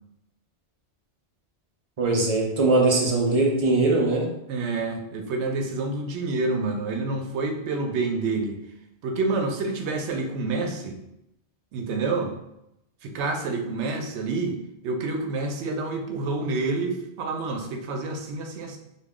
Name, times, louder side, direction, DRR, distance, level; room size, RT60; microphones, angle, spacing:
voice 1, 2.0-4.3, right 2 dB, 40° right, -1 dB, 0.6 m, -21 dB
voice 2, 4.5-8.6 9.0-11.0 11.7-12.3 13.0-14.6 14.8-18.8, right 3 dB, 90° right, 4 dB, 0.9 m, -28 dB
3.1 x 2.3 x 3.6 m, 0.84 s
omnidirectional pair, 1.1 m